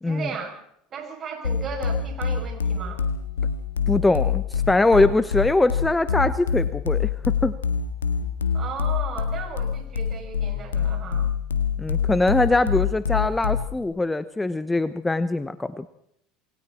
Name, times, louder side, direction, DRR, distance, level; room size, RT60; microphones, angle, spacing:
voice 1, 0.0-0.6 0.9-3.0 8.5-11.3, right 5 dB, 40° right, 3 dB, 7.5 m, -35 dB
sound 1, 1.4-13.8, left 7 dB, 85° left, 1.7 m, -25 dB
voice 2, 3.9-7.5 11.8-15.9, left 2 dB, 10° left, 14 dB, 1.1 m, -22 dB
28.0 x 21.5 x 4.4 m, 0.73 s
hypercardioid pair, 75°, 0 cm